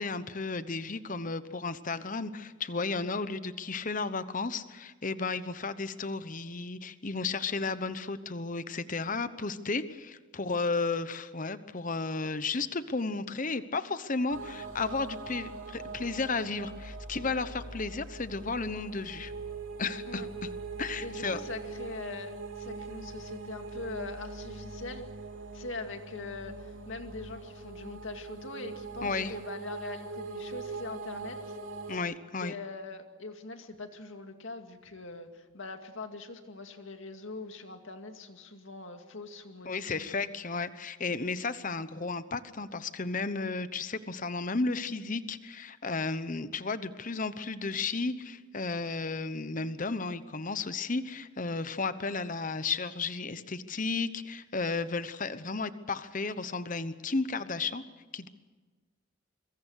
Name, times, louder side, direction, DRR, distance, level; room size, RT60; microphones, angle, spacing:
voice 1, 0.0-19.3 19.8-20.5 20.8-21.4 29.0-29.3 31.9-32.5 39.6-57.8 58.1-58.3, left 4 dB, 40° left, 13 dB, 1.0 m, -33 dB
sound 1, 14.3-32.0, right 3 dB, 70° right, 3.4 m, -42 dB
voice 2, 21.0-25.1 25.5-31.6 32.4-40.2, left 3 dB, 65° left, 6 dB, 2.3 m, -42 dB
25.0 x 23.5 x 6.5 m, 1.3 s
head